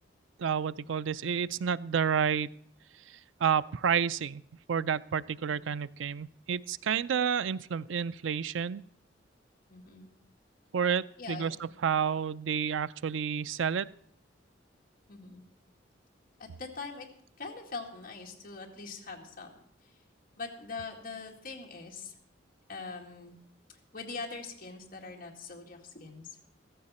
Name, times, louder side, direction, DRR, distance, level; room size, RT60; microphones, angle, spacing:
voice 1, 0.4-2.5 3.4-4.4 4.7-8.8 10.7-13.9, right 7 dB, 90° right, 16 dB, 0.4 m, -30 dB
voice 2, 9.7-10.1 11.2-11.7 15.1-15.4 16.4-17.1 17.4-19.5 20.4-22.1 22.7-23.3 23.7-26.4, left 4 dB, 50° left, 0 dB, 2.1 m, -42 dB
14.5 x 14.5 x 4.2 m, 0.67 s
head